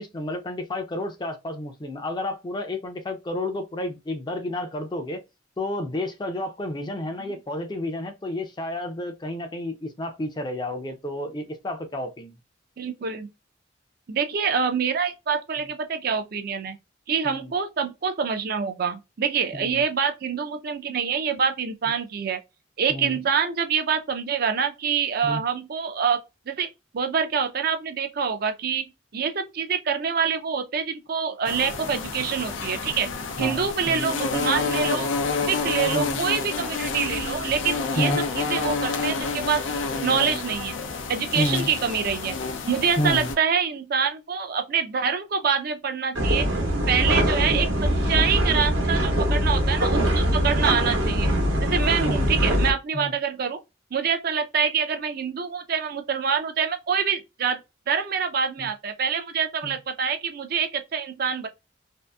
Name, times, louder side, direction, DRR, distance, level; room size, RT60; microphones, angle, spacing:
voice 1, 0.0-5.2 5.6-12.4 17.2-17.5 19.5-19.8 22.9-23.2 25.2-25.4 33.4-34.1 35.9-36.2 38.0-38.2 41.3-41.7 43.0-43.3 47.1-47.3 50.7-50.8 52.0-52.3 52.9-53.1 58.6-58.7 59.6-59.8, left 1 dB, 25° left, 0.4 m, -30 dB
voice 2, 12.8-13.3 14.1-16.8 17.1-22.4 22.8-26.2 26.5-26.7 26.9-28.8 29.1-33.1 33.4-35.1 35.5-39.6 40.0-40.8 41.1-42.4 42.7-46.5 46.9-51.3 51.6-53.6 53.9-57.6 57.9-61.5, right 6 dB, 55° right, 0.4 m, -26 dB
sound 1, 31.5-43.4, left 4 dB, 85° left, 0.5 m, -29 dB
sound 2, 46.2-52.7, equal, 90° right, 1.0 m, -22 dB
2.7 x 2.5 x 2.2 m
head